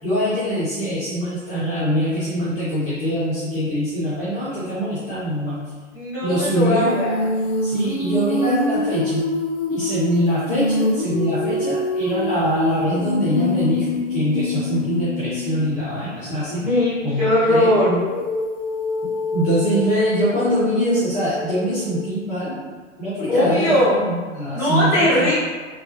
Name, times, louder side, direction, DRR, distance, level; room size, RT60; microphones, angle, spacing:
voice 1, 0.0-5.6 6.2-6.9 7.6-9.2 9.7-16.7 17.0-18.0 19.3-22.6 23.0-25.3, equal, 20° left, -12 dB, 0.8 m, -23 dB
voice 2, 5.9-7.3 16.5-18.2 23.3-24.0 24.5-25.3, left 1 dB, 5° right, -12 dB, 1.1 m, -19 dB
Female singing, 6.9-15.8 18.0-22.2, left 2 dB, 45° left, 0.5 m, -25 dB
3.2 x 2.4 x 2.8 m, 1.4 s
figure-of-eight pair, 115°, 40 cm